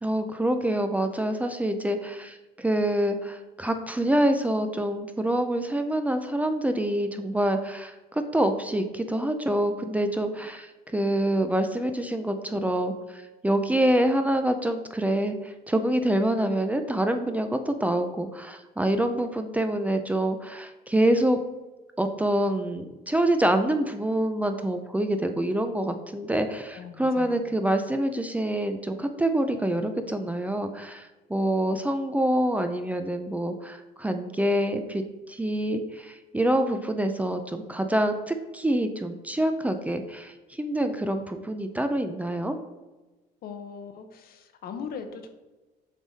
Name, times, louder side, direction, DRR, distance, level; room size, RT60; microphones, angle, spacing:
voice 1, 0.0-21.4 22.0-42.6, right 1 dB, 10° right, 7 dB, 0.5 m, -26 dB
voice 2, 26.7-27.5 43.4-45.3, left 6 dB, 60° left, 7 dB, 0.8 m, -39 dB
7.3 x 3.4 x 4.1 m, 1.1 s
cardioid pair, 110°, 17 cm